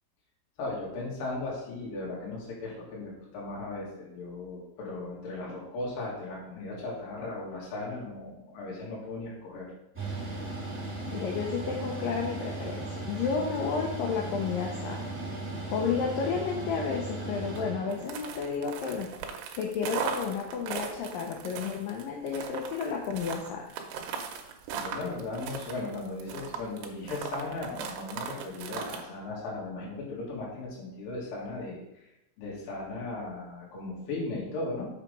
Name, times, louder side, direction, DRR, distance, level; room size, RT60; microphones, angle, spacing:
voice 1, 0.6-9.7 24.2-24.3 24.7-31.8 32.4-34.9, left 2 dB, 60° left, -4 dB, 3.6 m, -37 dB
Mechanical fan, 9.9-18.4, right 2 dB, 5° right, 1.1 m, -37 dB
voice 2, 11.1-15.1 15.7-19.1 19.6-23.7, left 6 dB, 75° left, 0 dB, 2.0 m, -32 dB
sound 1, 17.9-29.0, right 6 dB, 75° right, 2.8 m, -38 dB
7.4 x 5.0 x 5.3 m, 0.87 s
omnidirectional pair, 4.9 m